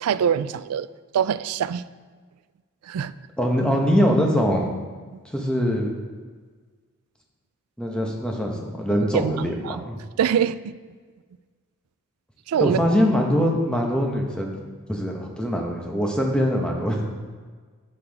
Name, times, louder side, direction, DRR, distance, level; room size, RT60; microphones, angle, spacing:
voice 1, 0.0-0.9 1.1-1.8 2.9-3.1 9.0-9.8 10.2-10.8 12.5-12.8, right 8 dB, 85° right, 15 dB, 0.3 m, -24 dB
voice 2, 3.4-4.7 5.2-5.9 7.8-10.0 12.6-14.6 14.9-17.0, equal, 5° left, 0 dB, 1.0 m, -23 dB
9.6 x 7.0 x 3.5 m, 1.5 s
head